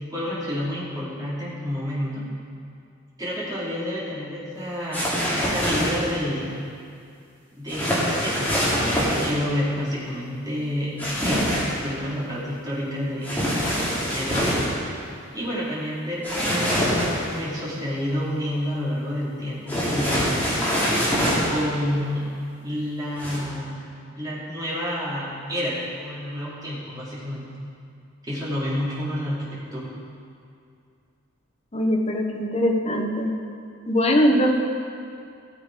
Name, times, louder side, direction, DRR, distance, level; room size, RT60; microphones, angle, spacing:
voice 1, 0.1-2.2 3.2-6.6 7.6-11.0 11.2-11.5 11.8-13.3 14.1-14.6 15.3-20.2 21.5-22.3 22.6-23.8 24.1-27.5 28.2-29.9, equal, 20° right, -9 dB, 3.2 m, -29 dB
sound 1, 4.9-6.1 7.7-9.3 11.0-11.8 13.2-14.7 16.2-17.3 19.7-21.6 23.2-23.4, equal, 10° left, 2.8 m, -24 dB
voice 2, 31.7-33.4 33.9-34.6, equal, 30° left, 1 dB, 0.9 m, -21 dB
17.5 x 7.2 x 4.9 m, 2.4 s
head